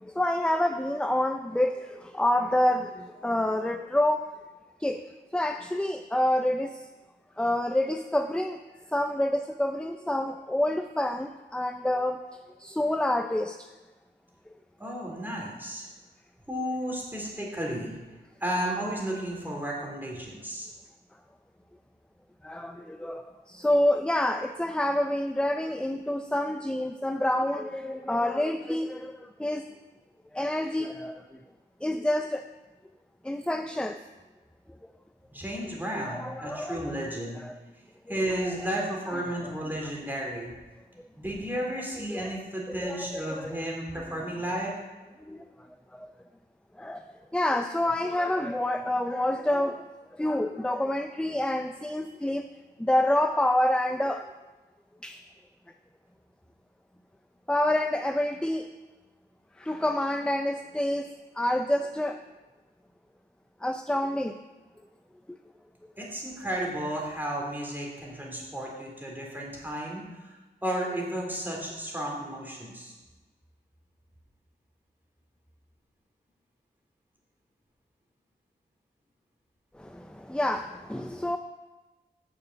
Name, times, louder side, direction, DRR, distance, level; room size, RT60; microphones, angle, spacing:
voice 1, 0.0-4.3 4.8-5.0 5.3-6.8 7.4-8.6 8.9-12.2 12.6-13.7 22.4-29.7 30.3-31.2 31.8-32.5 33.2-34.0 35.9-36.9 37.4-37.5 38.4-38.5 39.1-39.2 42.0-42.3 42.7-43.6 45.3-45.4 45.9-46.1 46.8-49.8 50.1-52.5 52.8-54.3 55.0-55.2 57.5-58.7 59.6-61.1 61.4-62.2 63.6-64.4 79.8-81.4, left 1 dB, 5° left, 7 dB, 0.5 m, -28 dB
voice 2, 14.8-15.8 16.5-18.0 18.4-20.7 35.3-37.4 38.1-40.5 41.2-44.8 66.0-70.4 70.6-72.9, right 1 dB, 10° right, -2 dB, 3.5 m, -33 dB
9.0 x 7.0 x 8.2 m, 1.2 s
wide cardioid pair, 90°, 19 cm